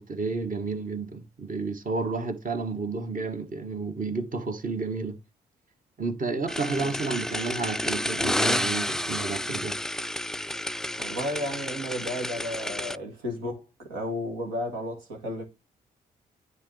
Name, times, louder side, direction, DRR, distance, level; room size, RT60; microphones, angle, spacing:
voice 1, 0.0-5.2 6.0-9.8, right 4 dB, 45° right, 1.5 m, -31 dB
sound 1, 6.5-13.0, left 1 dB, 5° left, 0.3 m, -30 dB
voice 2, 11.0-15.4, left 1 dB, 85° right, 2.0 m, -33 dB
10.0 x 4.0 x 3.3 m
hypercardioid pair, 40°, 20 cm